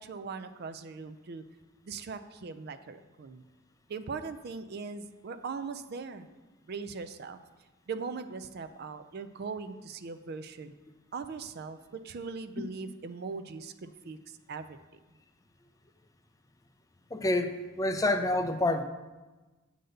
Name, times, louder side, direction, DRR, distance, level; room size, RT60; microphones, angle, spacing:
voice 1, 0.0-1.4 1.8-3.4 3.9-6.3 6.7-7.4 7.9-10.7 11.1-14.8, right 4 dB, 50° right, 10 dB, 0.4 m, -40 dB
voice 2, 17.1-18.8, left 2 dB, 15° left, 7 dB, 0.4 m, -28 dB
7.8 x 4.0 x 6.5 m, 1.2 s
head